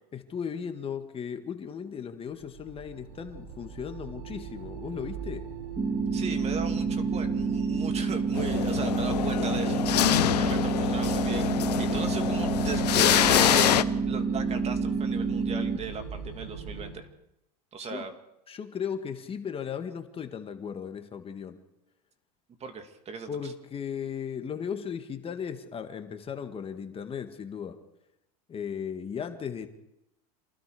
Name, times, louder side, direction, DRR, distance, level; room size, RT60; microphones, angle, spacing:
voice 1, 0.1-5.5 17.8-18.1 18.5-21.6 23.3-27.8 28.5-29.7, left 7 dB, 30° left, 7 dB, 1.8 m, -36 dB
sound 1, 2.3-16.9, right 5 dB, 75° right, 6.4 m, -40 dB
sound 2, 5.8-15.8, right 4 dB, 15° right, 2.0 m, -28 dB
voice 2, 6.1-17.1 17.7-18.1 22.6-23.5, right 5 dB, 30° right, 7 dB, 2.7 m, -38 dB
sound 3, 8.3-13.8, left 12 dB, 85° left, 0.9 m, -25 dB
27.5 x 20.0 x 5.0 m, 0.87 s
hypercardioid pair, 105°, 20 cm